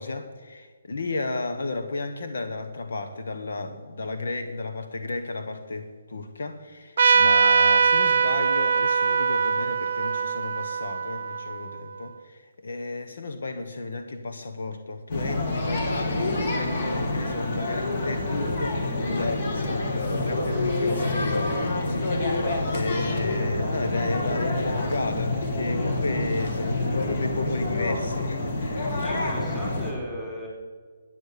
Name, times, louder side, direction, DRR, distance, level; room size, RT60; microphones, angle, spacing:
voice 1, 0.0-29.0, left 3 dB, 70° left, 7 dB, 1.3 m, -33 dB
Trumpet, 7.0-12.1, right 5 dB, 55° right, 0.6 m, -22 dB
sound 1, 15.1-29.9, left 2 dB, 45° left, 2.6 m, -27 dB
voice 2, 29.0-30.5, equal, 5° left, -5 dB, 4.4 m, -36 dB
13.0 x 9.5 x 6.8 m, 1.5 s
hypercardioid pair, 160°, 0 cm